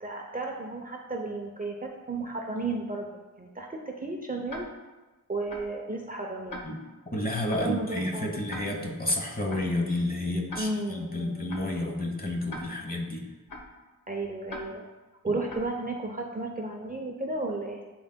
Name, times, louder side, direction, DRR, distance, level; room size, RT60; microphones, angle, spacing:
voice 1, 0.0-3.1 3.4-4.7 5.3-6.6 7.6-8.5 10.6-11.5 14.1-14.9 15.2-17.8, right 2 dB, 25° right, 1 dB, 0.6 m, -33 dB
Tick-tock, 4.5-4.6 5.5-5.6 6.5-6.6 7.5-7.6 8.5-8.6 9.5-9.6 10.5-10.6 11.5-11.6 12.5-12.6 13.5-13.6 14.5-14.6 15.5-15.6, left 1 dB, 65° left, 0.9 m, -39 dB
voice 2, 7.1-13.3 15.3-15.4, left 1 dB, 25° left, 1 dB, 1.0 m, -30 dB
11.5 x 3.9 x 2.2 m, 1.2 s
wide cardioid pair, 95°, 34 cm